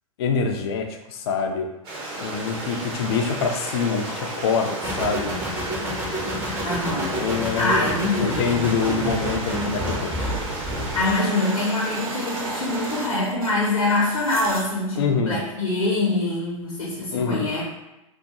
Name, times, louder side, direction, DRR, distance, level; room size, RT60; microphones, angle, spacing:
voice 1, 0.2-1.7 2.2-5.3 7.1-7.9 8.2-10.1 15.0-15.4 17.1-17.5, left 5 dB, 45° left, 4 dB, 0.4 m, -25 dB
Stream, 1.8-13.1, right 2 dB, 45° right, 0.9 m, -33 dB
sound 1, 4.8-11.2, equal, 15° right, 0.5 m, -29 dB
voice 2, 6.6-8.5 10.9-17.6, left 2 dB, 70° left, -4 dB, 0.7 m, -24 dB
sound 2, 10.2-15.0, right 2 dB, 85° right, 0.4 m, -37 dB
2.3 x 2.1 x 2.8 m, 0.95 s
figure-of-eight pair, 100°, 18 cm